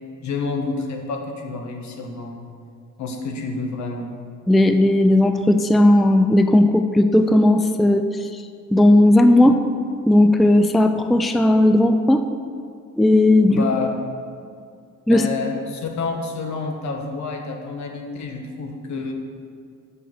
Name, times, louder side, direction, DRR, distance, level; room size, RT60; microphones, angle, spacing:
voice 1, 0.2-2.4 3.0-4.1 13.5-13.9 15.1-19.1, left 4 dB, 70° left, 3 dB, 1.3 m, -28 dB
voice 2, 4.5-8.1 8.7-9.5 10.1-12.3 13.0-13.7 15.1-15.3, left 1 dB, ahead, 8 dB, 0.4 m, -15 dB
6.8 x 6.3 x 7.7 m, 2.2 s
cardioid pair, 90°, 30 cm